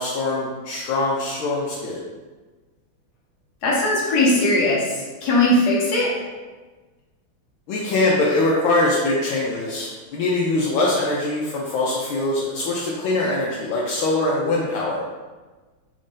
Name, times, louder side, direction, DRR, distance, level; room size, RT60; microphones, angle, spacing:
voice 1, 0.0-2.0 7.7-15.0, left 2 dB, 75° left, -4 dB, 1.3 m, -22 dB
voice 2, 3.6-4.9 5.2-6.2 9.6-9.7, left 1 dB, 55° left, -5 dB, 1.4 m, -19 dB
4.1 x 2.6 x 3.7 m, 1.3 s
omnidirectional pair, 2.4 m